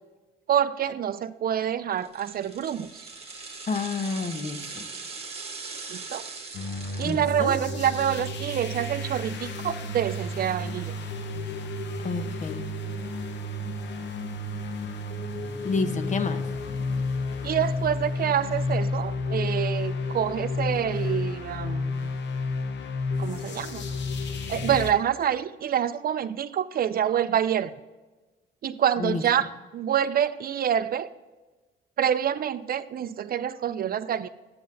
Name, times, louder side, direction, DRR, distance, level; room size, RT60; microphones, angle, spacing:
voice 1, 0.5-2.9 5.9-6.2 7.0-10.9 17.4-22.1 23.2-23.9 24.5-27.7 28.6-29.4 29.7-31.1 32.0-34.3, right 9 dB, 50° right, 14 dB, 0.4 m, -27 dB
sound 1, 2.0-9.3 9.6-9.7, right 4 dB, 30° right, 1.4 m, -41 dB
voice 2, 3.7-4.9 7.0-7.6 12.0-12.6 15.6-16.4 29.0-29.2, left 4 dB, 40° left, 9 dB, 0.8 m, -29 dB
sound 2, 6.5-24.9, left 2 dB, 65° left, 0.8 m, -31 dB
7.9 x 5.5 x 5.3 m, 1.2 s
cardioid pair, 90°, 20 cm